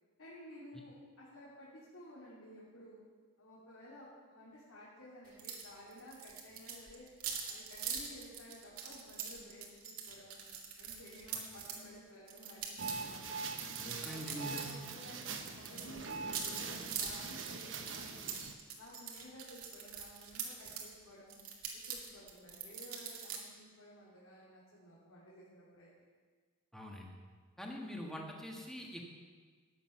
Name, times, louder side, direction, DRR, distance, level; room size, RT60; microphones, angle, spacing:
voice 1, 0.2-3.0 3.4-7.1 7.5-10.5 10.8-13.2 13.6-18.3 18.8-21.4 21.9-25.9, equal, 85° left, -8 dB, 3.3 m, -54 dB
sound 1, 5.4-5.7 5.9-11.8 12.3-14.7 15.0-20.9 21.3-23.4, right 7 dB, 90° right, 2.3 m, -43 dB
sound 2, 12.8-18.5, right 4 dB, 60° right, 1.1 m, -43 dB
voice 2, 13.8-14.7 26.7-27.1 27.6-29.2, equal, ahead, -1 dB, 1.7 m, -44 dB
14.5 x 10.0 x 6.0 m, 1.5 s
head